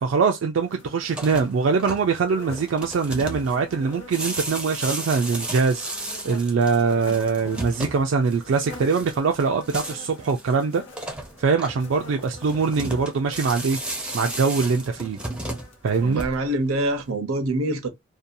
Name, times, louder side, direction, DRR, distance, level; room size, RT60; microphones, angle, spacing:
voice 1, 0.0-5.9 6.2-10.8 11.4-13.8 14.1-15.2 15.8-16.2, right 5 dB, 65° right, 0.3 m, -23 dB
sound 1, 0.6-16.2, left 3 dB, 60° left, 0.9 m, -46 dB
sound 2, 1.0-16.7, right 1 dB, 5° right, 0.4 m, -35 dB
voice 2, 16.0-17.9, right 1 dB, 85° right, 0.7 m, -25 dB
2.7 x 2.2 x 2.5 m
head